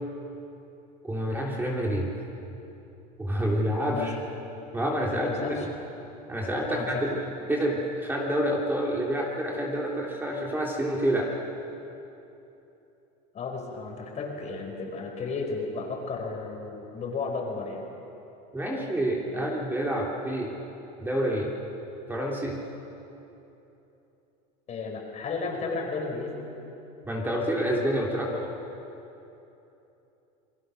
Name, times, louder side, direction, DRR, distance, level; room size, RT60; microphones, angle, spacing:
voice 1, 1.0-2.2 3.2-4.1 4.7-5.5 6.3-7.2 7.5-11.4 18.5-20.5 21.0-21.5 22.1-22.6 27.0-28.5, equal, 10° right, -2 dB, 3.3 m, -28 dB
voice 2, 5.1-5.7 6.7-7.1 13.3-17.8 19.3-19.5 24.7-26.4, left 4 dB, 35° left, 2 dB, 4.9 m, -33 dB
28.5 x 20.5 x 6.5 m, 3.0 s
supercardioid pair, 120°, 20 cm